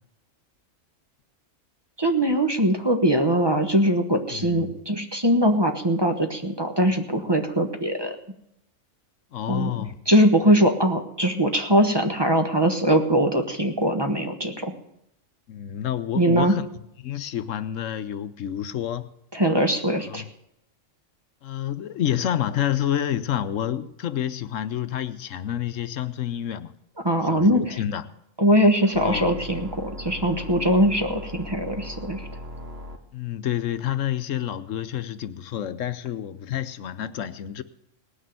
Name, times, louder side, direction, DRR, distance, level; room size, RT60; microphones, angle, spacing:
voice 1, 2.0-8.2 9.5-9.7 10.1-14.7 16.1-16.5 19.3-20.2 27.0-27.8 28.4-32.3, equal, 20° right, 5 dB, 1.2 m, -21 dB
voice 2, 4.3-4.7 9.3-10.0 15.5-16.7 17.0-19.1 20.1-20.3 21.4-26.7 27.2-28.1 29.0-29.3 33.1-37.6, left 11 dB, 75° left, 13 dB, 1.1 m, -29 dB
sound 1, 28.9-33.0, left 1 dB, 55° right, 1.6 m, -38 dB
18.5 x 6.4 x 9.2 m, 0.79 s
omnidirectional pair, 1.3 m